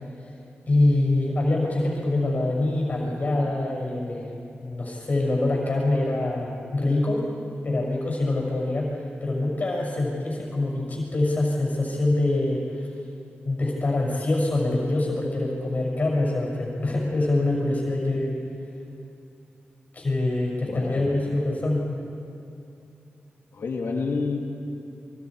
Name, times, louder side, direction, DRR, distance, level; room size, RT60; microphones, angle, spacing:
voice 1, 0.7-4.3 4.6-7.3 7.6-8.9 9.2-12.9 13.4-18.4 19.9-21.9, left 2 dB, 45° left, -1 dB, 5.8 m, -24 dB
voice 2, 20.7-21.1 23.5-24.4, left 4 dB, 80° left, 1 dB, 2.6 m, -28 dB
28.0 x 24.5 x 4.8 m, 2.6 s
wide cardioid pair, 95°, 4 cm